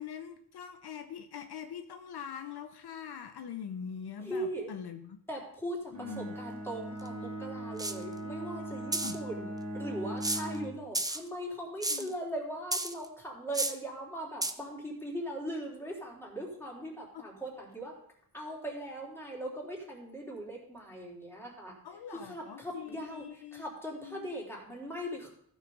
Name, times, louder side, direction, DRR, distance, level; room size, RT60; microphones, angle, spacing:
voice 1, 0.0-5.2 5.9-6.3 9.0-9.2 10.3-10.6 11.9-12.1 17.1-17.3 21.8-23.6 23.9-24.3, left 8 dB, 70° left, 7 dB, 0.8 m, -43 dB
voice 2, 4.2-4.7 5.3-18.0 18.3-21.8 22.1-25.3, right 1 dB, 5° left, -3 dB, 3.5 m, -40 dB
Bowed string instrument, 5.9-10.8, right 1 dB, 45° right, 2.6 m, -39 dB
sound 1, 7.1-7.2 7.8-8.0 8.9-9.2 10.2-10.6 10.9-11.2 11.8-12.1 12.7-13.1 13.5-13.8 14.4-14.5, right 2 dB, 10° right, 0.7 m, -31 dB
14.5 x 6.5 x 3.9 m, 0.65 s
wide cardioid pair, 105°, 40 cm